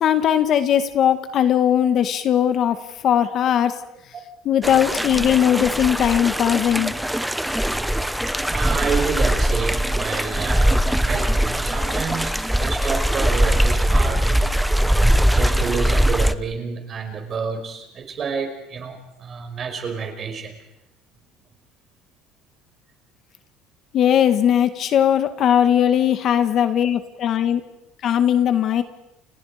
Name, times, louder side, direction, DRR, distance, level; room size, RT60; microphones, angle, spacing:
voice 1, 0.0-3.8 4.5-6.9 23.9-27.6 28.0-28.8, left 9 dB, 40° left, 9 dB, 1.8 m, -19 dB
sound 1, 4.6-16.3, right 1 dB, ahead, 0.9 m, -21 dB
voice 2, 8.3-14.4 15.1-20.6, right 5 dB, 30° right, 5 dB, 5.5 m, -29 dB
Door, 11.0-11.5 12.7-14.4 15.5-16.0, right 10 dB, 80° right, 6.3 m, -41 dB
30.0 x 29.0 x 5.1 m, 0.88 s
cardioid pair, 150°, 0 cm